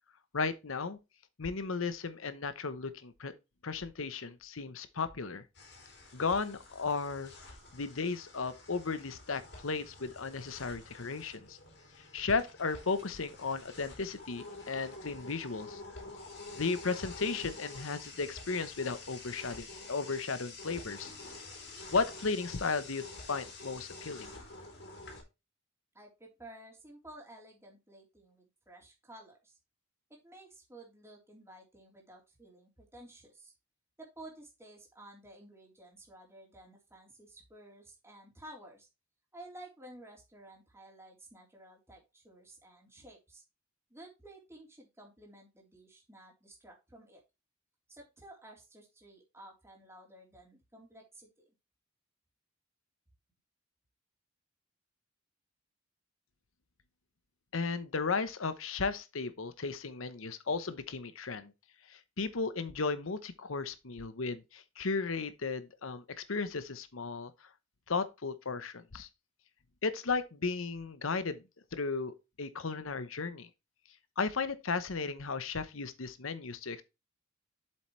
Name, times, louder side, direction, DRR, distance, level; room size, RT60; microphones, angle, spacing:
voice 1, 0.3-1.0 1.4-3.3 3.6-5.4 6.1-7.3 7.7-11.6 12.1-15.8 16.6-21.1 21.9-24.3 57.5-61.5 61.9-67.3 67.9-69.1 69.8-71.4 71.7-73.5 74.2-76.8, left 4 dB, 75° left, 0.9 m, -35 dB
sound 1, 5.5-25.2, left 3 dB, 55° left, 3.5 m, -48 dB
voice 2, 25.9-29.6 30.2-33.5 34.0-38.9 39.3-43.4 43.9-47.2 47.9-51.5, right 1 dB, 15° right, 3.5 m, -53 dB
7.6 x 7.5 x 3.2 m
head